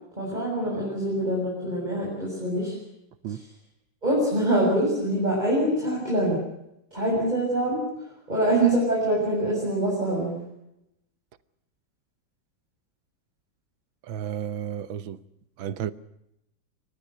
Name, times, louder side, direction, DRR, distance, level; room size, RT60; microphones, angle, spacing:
voice 1, 0.2-2.7 3.3-3.4 4.0-6.4 6.9-10.3, right 1 dB, 20° right, 7.6 m, -25 dB
voice 2, 14.0-15.2 15.6-15.9, right 9 dB, 90° right, 1.8 m, -32 dB
25.0 x 19.0 x 7.8 m
omnidirectional pair, 2.1 m